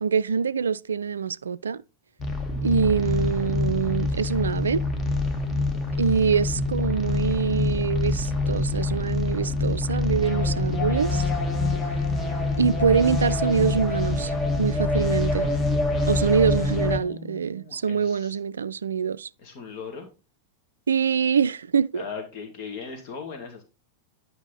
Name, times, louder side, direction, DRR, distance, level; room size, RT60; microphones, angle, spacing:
voice 1, 0.0-1.8 2.6-4.8 6.0-11.2 12.6-15.5 16.1-19.3 20.9-22.0, right 6 dB, 70° right, 0.4 m, -24 dB
sound 1, 2.2-17.0, left 2 dB, 20° left, 1.8 m, -25 dB
voice 2, 16.7-18.4 19.4-20.1 21.9-23.6, left 5 dB, 45° left, 2.4 m, -39 dB
10.5 x 5.6 x 4.1 m
figure-of-eight pair, 90°, 0 cm